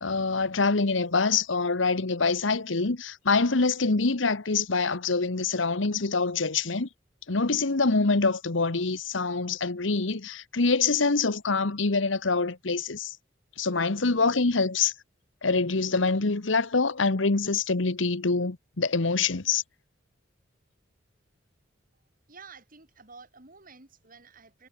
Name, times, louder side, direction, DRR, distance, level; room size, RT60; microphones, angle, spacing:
voice 1, 0.0-6.9 7.3-13.1 13.6-14.9 15.4-19.6, left 4 dB, 80° left, 1.3 m, -25 dB
voice 2, 22.3-24.7, right 4 dB, 45° right, 4.5 m, -51 dB
head